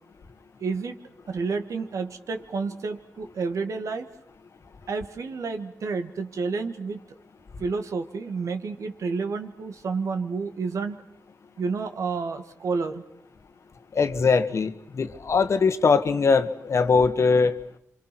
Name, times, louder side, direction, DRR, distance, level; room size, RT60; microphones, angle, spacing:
voice 1, 0.6-1.0 1.3-4.1 4.9-7.0 7.6-11.0 11.6-13.0, right 4 dB, 75° right, 7 dB, 1.9 m, -30 dB
voice 2, 13.9-17.6, left 4 dB, 60° left, 11 dB, 1.4 m, -21 dB
27.5 x 25.5 x 6.1 m, 0.79 s
cardioid pair, 70°, 5 cm